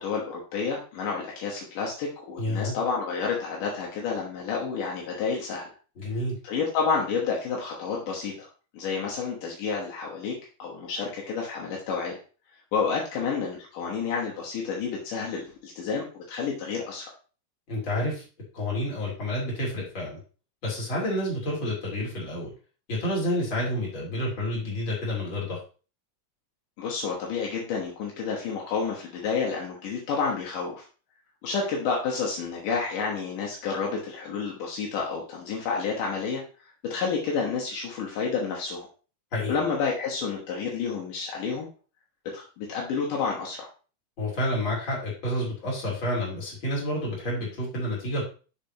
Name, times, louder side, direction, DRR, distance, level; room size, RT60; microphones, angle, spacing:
voice 1, 0.0-5.6 6.4-8.5 8.7-10.3 10.6-12.2 12.7-17.1 26.8-30.8 31.4-36.4 36.9-38.9 39.5-41.7 42.3-43.6, left 5 dB, 80° left, -2 dB, 2.8 m, -30 dB
voice 2, 2.4-2.7 6.0-6.4 17.7-18.2 18.5-20.2 20.6-22.5 22.9-25.6 39.3-39.5 44.2-48.2, left 1 dB, 35° left, -5 dB, 3.8 m, -29 dB
6.9 x 6.7 x 2.9 m, 0.36 s
omnidirectional pair, 3.7 m